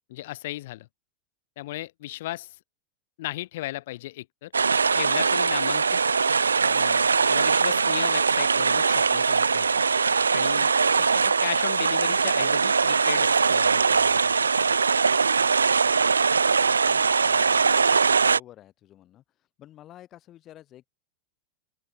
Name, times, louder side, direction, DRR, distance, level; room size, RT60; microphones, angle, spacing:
voice 1, 0.1-0.9 1.6-2.6 3.2-4.5 4.9-6.0 6.6-9.7 10.3-14.3, left 16 dB, 55° left, 2.9 m, -36 dB
sound 1, 4.5-18.4, right 5 dB, 75° right, 0.3 m, -21 dB
voice 2, 16.9-19.2 19.6-20.9, left 13 dB, 30° left, 8.0 m, -50 dB
open air
figure-of-eight pair, 90°, 0 cm